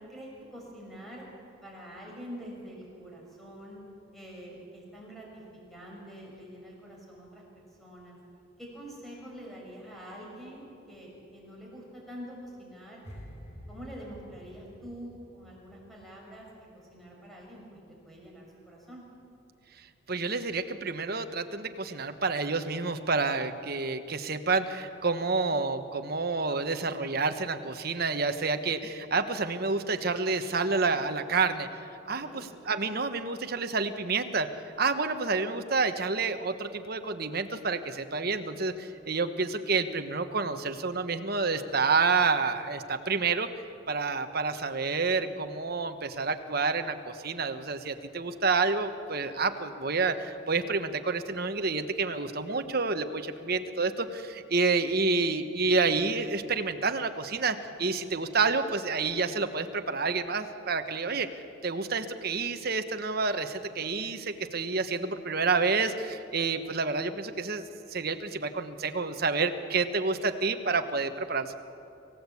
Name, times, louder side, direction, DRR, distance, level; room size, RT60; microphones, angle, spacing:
voice 1, 0.1-1.2 1.6-3.8 4.1-5.4 5.7-7.4 7.8-8.2 8.6-13.0 13.7-16.5 16.9-19.0 32.2-32.5, equal, ahead, -3 dB, 5.9 m, -45 dB
sound 1, 13.0-16.2 16.5-16.8, equal, 35° left, 3.7 m, -48 dB
voice 2, 20.1-31.7 32.1-34.5 34.8-43.5 43.9-67.6 67.9-71.5, right 4 dB, 50° right, 8 dB, 1.2 m, -29 dB
27.0 x 16.0 x 8.5 m, 2.8 s
head